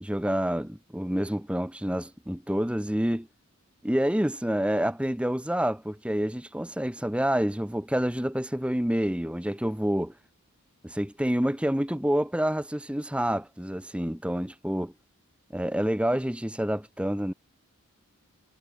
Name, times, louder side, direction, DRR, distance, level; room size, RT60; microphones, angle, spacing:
voice 1, 0.0-3.3 3.8-10.1 10.8-14.9 15.5-17.3, equal, 5° right, 0.9 m, -28 dB
head